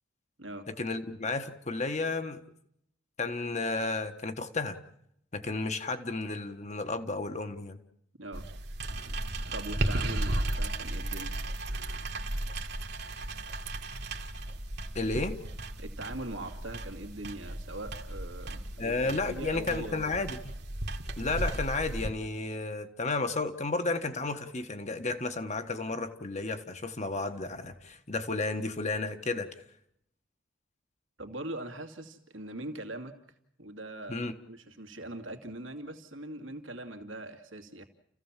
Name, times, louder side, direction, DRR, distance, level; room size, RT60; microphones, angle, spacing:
voice 1, 0.7-2.4 3.2-4.8 5.3-7.8 14.9-15.4 18.8-20.4 21.2-29.5 34.1-34.3, left 3 dB, 35° left, 8 dB, 1.4 m, -32 dB
voice 2, 8.2-8.5 9.5-11.4 15.8-20.1 31.2-33.2 33.6-37.8, right 1 dB, 80° right, 5 dB, 2.5 m, -41 dB
sound 1, 8.3-22.1, right 1 dB, 55° right, 1.9 m, -35 dB
30.0 x 15.5 x 7.4 m, 0.74 s
head